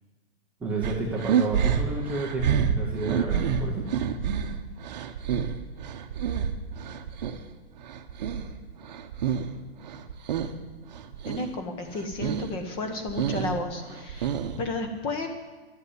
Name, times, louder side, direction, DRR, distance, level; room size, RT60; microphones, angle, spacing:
voice 1, 0.6-3.9, right 2 dB, 5° right, -5 dB, 0.8 m, -31 dB
sound 1, 0.8-7.4 7.8-9.6 9.8-10.6 10.9-11.5 11.9-12.5 12.9-14.7, right 8 dB, 40° right, 1.0 m, -28 dB
voice 2, 11.3-15.3, left 2 dB, 15° left, 5 dB, 1.1 m, -32 dB
11.5 x 8.2 x 9.6 m, 1.2 s
hypercardioid pair, 165°, 32 cm